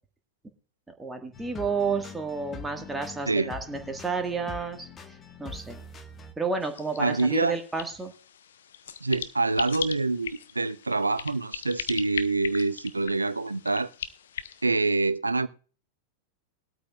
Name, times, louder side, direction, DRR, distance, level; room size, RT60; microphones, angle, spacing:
voice 1, 1.0-5.8 6.4-8.1, right 4 dB, 10° right, 1.5 m, -31 dB
sound 1, 1.3-6.3, left 4 dB, 25° left, 1.3 m, -43 dB
sound 2, 6.6-14.7, left 8 dB, 65° left, 0.7 m, -39 dB
voice 2, 7.0-7.6 9.0-13.9 14.6-15.5, right 3 dB, 80° right, 0.5 m, -26 dB
21.5 x 8.6 x 2.3 m
figure-of-eight pair, 90°, 0 cm